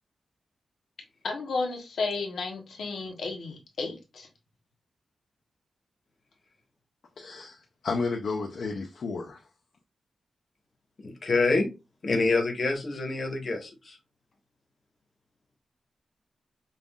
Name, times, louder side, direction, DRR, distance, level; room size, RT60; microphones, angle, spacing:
voice 1, 1.2-4.3, left 3 dB, 85° left, 0.9 m, -33 dB
voice 2, 7.2-9.4, left 4 dB, 60° left, 0.5 m, -32 dB
voice 3, 11.0-11.7 12.0-14.0, left 3 dB, 40° left, 1.0 m, -26 dB
5.3 x 2.5 x 2.3 m
wide cardioid pair, 170°, 0 cm